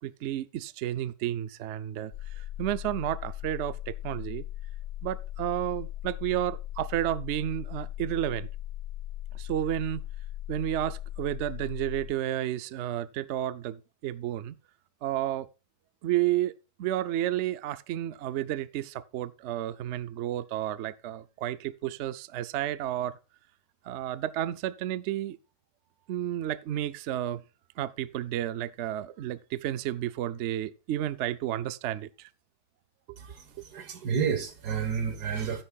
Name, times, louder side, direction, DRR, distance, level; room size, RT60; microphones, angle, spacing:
voice 1, 0.0-4.4 5.0-8.5 9.3-10.0 10.5-14.6 15.0-15.5 16.0-16.5 16.8-23.2 23.9-25.4 26.1-27.4 27.8-32.3, right 12 dB, 65° right, 0.7 m, -31 dB
sound 1, 2.1-12.1, left 13 dB, 80° left, 1.3 m, -38 dB
voice 2, 33.7-35.6, right 7 dB, 85° right, 2.0 m, -30 dB
12.5 x 10.0 x 2.3 m
omnidirectional pair, 1.7 m